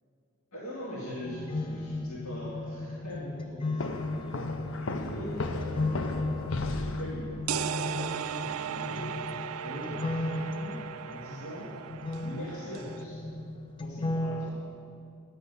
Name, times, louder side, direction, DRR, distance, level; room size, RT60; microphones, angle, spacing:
voice 1, 0.5-4.1 4.9-9.1 9.6-11.7 12.1-13.2 13.8-14.5, equal, 85° left, -6 dB, 1.9 m, -41 dB
sound 1, 1.2-14.5, left 2 dB, 25° left, 0.4 m, -35 dB
sound 2, 3.8-7.5, left 2 dB, 65° left, 0.6 m, -35 dB
sound 3, 7.5-13.0, right 10 dB, 80° right, 0.3 m, -37 dB
9.9 x 8.9 x 5.4 m, 2.6 s
head